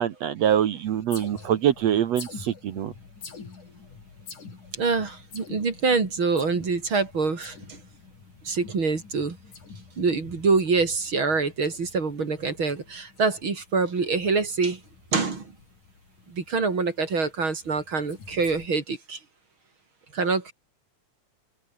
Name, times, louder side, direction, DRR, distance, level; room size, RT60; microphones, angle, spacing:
voice 1, 0.0-2.9, right 10 dB, 65° right, 2.2 m, -24 dB
sound 1, 0.8-18.7, left 5 dB, 80° left, 6.7 m, -47 dB
voice 2, 4.7-7.8 8.4-9.4 10.0-14.8 15.1-15.5 16.3-19.2 20.1-20.5, right 4 dB, 40° right, 3.9 m, -25 dB
omnidirectional pair, 3.5 m